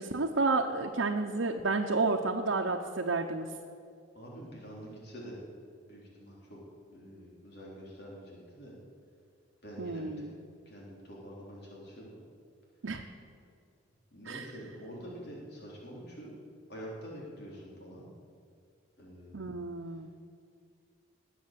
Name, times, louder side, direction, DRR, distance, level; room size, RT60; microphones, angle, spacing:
voice 1, 0.0-3.5 9.8-10.3 12.8-13.0 14.3-14.5 19.3-20.1, right 3 dB, 85° right, 1 dB, 0.9 m, -31 dB
voice 2, 4.1-5.4 5.9-6.6 6.9-8.7 9.6-10.3 10.7-12.2 14.1-16.3 16.7-18.1 19.0-19.6, equal, 60° left, -4 dB, 3.7 m, -46 dB
19.5 x 7.2 x 7.5 m, 2.3 s
head